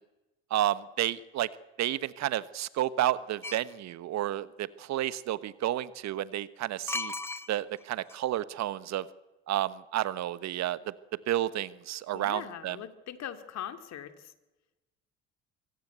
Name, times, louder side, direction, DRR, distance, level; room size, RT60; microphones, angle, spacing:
voice 1, 0.5-1.5 1.8-7.1 7.5-9.1 9.5-12.8, right 13 dB, 55° right, 16 dB, 1.2 m, -31 dB
sound 1, 3.4-3.7 6.9-7.8 8.1-8.2, left 2 dB, 5° left, 1.0 m, -35 dB
voice 2, 12.1-14.3, left 10 dB, 55° left, 8 dB, 2.5 m, -41 dB
25.5 x 17.0 x 8.2 m, 1.0 s
hypercardioid pair, 60°, 32 cm